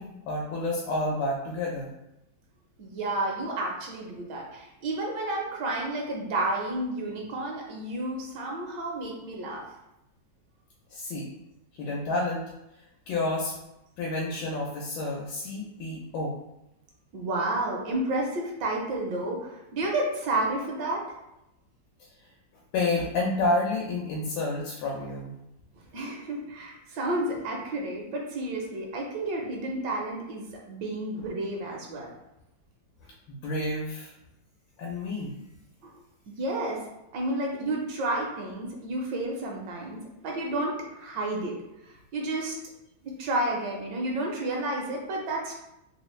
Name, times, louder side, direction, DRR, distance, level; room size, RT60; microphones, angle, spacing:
voice 1, 0.0-1.9 10.9-11.3 11.8-12.4 13.1-13.5 14.0-16.3 22.7-25.3 31.2-31.3 33.3-34.1 34.8-35.3, left 2 dB, 85° left, -2 dB, 1.4 m, -29 dB
voice 2, 2.8-9.7 17.1-21.0 23.0-23.1 25.9-32.1 35.8-35.9 36.3-36.8 37.1-41.5 41.9-42.6 43.2-45.5, right 2 dB, 75° right, -1 dB, 1.3 m, -31 dB
3.4 x 2.4 x 3.1 m, 0.88 s
omnidirectional pair, 2.1 m